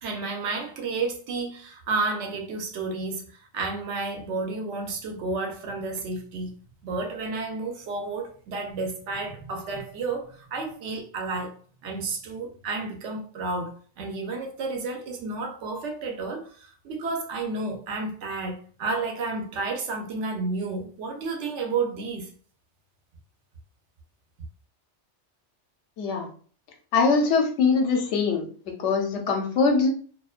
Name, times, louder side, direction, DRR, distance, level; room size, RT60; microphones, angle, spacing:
voice 1, 0.0-6.5 6.8-11.5 11.8-22.3, right 3 dB, 75° right, 0.9 m, -31 dB
voice 2, 26.0-26.3 26.9-28.5 28.8-29.9, left 4 dB, 75° left, 0.9 m, -22 dB
2.4 x 2.1 x 2.4 m
omnidirectional pair, 1.2 m